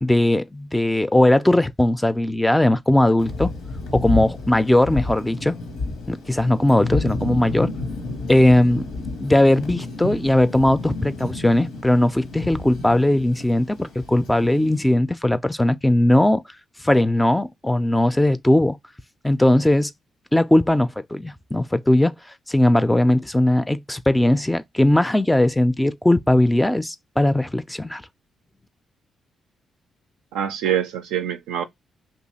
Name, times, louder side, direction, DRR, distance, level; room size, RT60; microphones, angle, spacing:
voice 1, 0.0-3.5 3.9-5.5 6.1-7.7 8.3-8.9 9.2-16.4 16.8-18.8 19.2-19.9 20.3-22.1 22.5-28.0, left 1 dB, 10° left, 0.4 m, -19 dB
Thunder, 3.2-14.8, left 3 dB, 80° left, 0.9 m, -31 dB
voice 2, 30.3-31.6, right 9 dB, 80° right, 0.3 m, -25 dB
2.7 x 2.3 x 4.1 m
hypercardioid pair, 45°, 0 cm